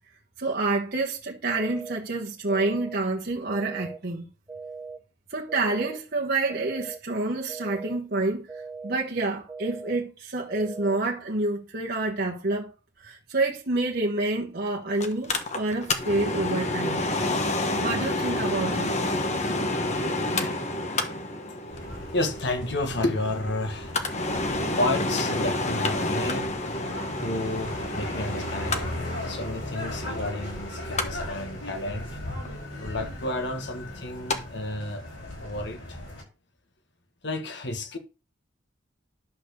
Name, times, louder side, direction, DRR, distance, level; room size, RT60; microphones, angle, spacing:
voice 1, 0.4-4.2 5.3-17.0 17.7-18.9, right 2 dB, 55° right, 1.4 m, -28 dB
sound 1, 1.5-2.0 2.5-3.0 3.5-4.0 4.5-5.0 5.5-6.0 6.5-7.0 7.5-8.0 8.5-9.0 9.5-10.0 10.5-11.0, right 4 dB, 15° right, 1.0 m, -39 dB
Mechanical fan, 15.0-34.4 34.7-34.8, left 2 dB, 40° left, 1.3 m, -30 dB
sound 2, 21.7-36.2, left 1 dB, 90° left, 5.1 m, -38 dB
voice 2, 22.1-24.0 24.8-26.5 26.9-32.1 32.8-35.0 35.4-36.0 37.2-38.0, left 2 dB, 65° left, 1.6 m, -31 dB
11.0 x 4.3 x 6.8 m
head